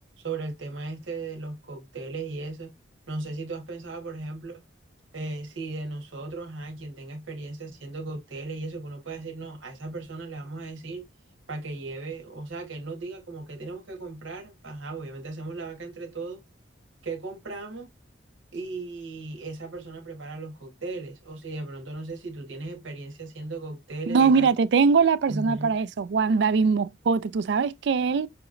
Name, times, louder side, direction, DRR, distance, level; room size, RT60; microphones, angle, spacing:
voice 1, 0.2-2.7 3.1-4.6 5.1-11.1 11.5-16.4 17.0-17.9 18.5-24.5 25.3-25.7, right 3 dB, 85° right, 1.2 m, -36 dB
voice 2, 24.1-28.3, right 5 dB, 60° right, 0.3 m, -22 dB
5.8 x 3.0 x 2.5 m
head